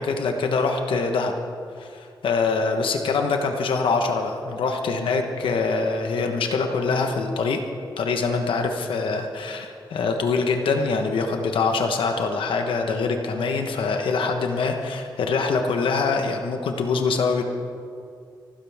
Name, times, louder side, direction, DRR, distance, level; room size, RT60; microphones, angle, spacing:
voice 1, 0.0-1.3 1.8-7.6 8.0-17.4, left 4 dB, 80° left, 4 dB, 1.3 m, -24 dB
25.0 x 13.0 x 3.6 m, 2.3 s
cardioid pair, 60°, 9 cm